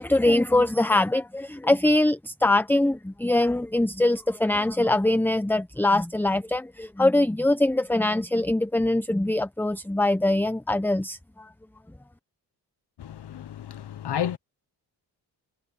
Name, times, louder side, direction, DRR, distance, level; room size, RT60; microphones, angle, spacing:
voice 1, 0.0-11.5, left 1 dB, 5° left, 0.9 m, -23 dB
voice 2, 13.0-14.4, left 10 dB, 65° left, 1.2 m, -31 dB
cardioid pair, 55°, 43 cm